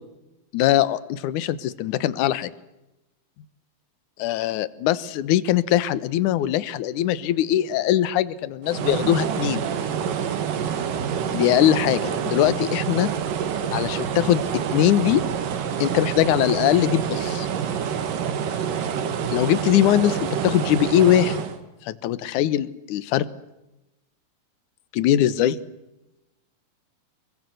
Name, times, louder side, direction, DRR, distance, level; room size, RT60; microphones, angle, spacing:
voice 1, 0.5-2.5 4.2-9.7 11.3-13.1 13.7-14.5 14.7-15.2 15.8-17.5 19.3-21.5 21.8-23.3 24.9-25.6, left 12 dB, 70° left, 15 dB, 2.4 m, -21 dB
sound 1, 8.6-21.6, right 8 dB, 70° right, 3.4 m, -27 dB
26.5 x 22.5 x 7.9 m, 0.95 s
omnidirectional pair, 3.9 m